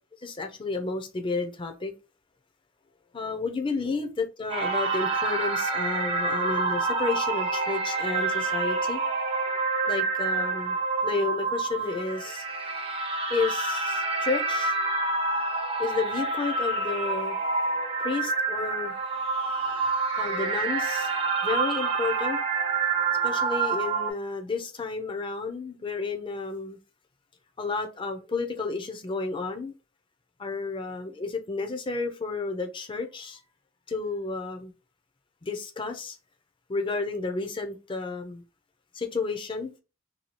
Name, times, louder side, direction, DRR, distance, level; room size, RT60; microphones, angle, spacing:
voice 1, 0.2-1.9 3.1-9.0 9.9-10.8 11.0-12.4 13.3-14.7 15.8-17.4 18.0-18.9 20.2-21.1 21.4-22.4 23.2-26.8 27.6-29.7 30.4-33.4 33.9-34.7 35.4-36.2 36.7-38.4 38.9-39.7, left 3 dB, 25° left, 0.4 m, -31 dB
sound 1, 4.5-24.1, right 3 dB, 25° right, 0.5 m, -27 dB
2.8 x 2.3 x 3.0 m
head